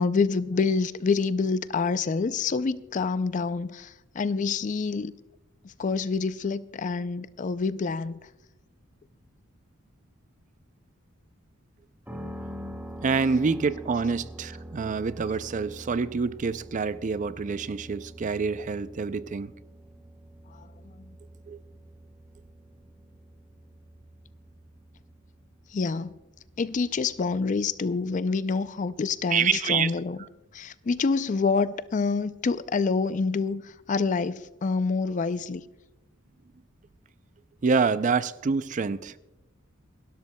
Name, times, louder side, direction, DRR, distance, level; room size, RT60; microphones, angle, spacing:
voice 1, 0.0-5.1 5.6-8.2 20.6-20.7 21.0-21.1 25.7-26.1 26.6-30.2 30.5-35.6, left 4 dB, 40° left, 0.4 m, -27 dB
sound 1, 12.1-27.9, right 1 dB, 10° right, 1.5 m, -45 dB
voice 2, 13.0-19.5 21.5-21.6 29.3-29.9 37.6-39.1, right 5 dB, 40° right, 0.4 m, -27 dB
28.0 x 12.5 x 2.2 m
head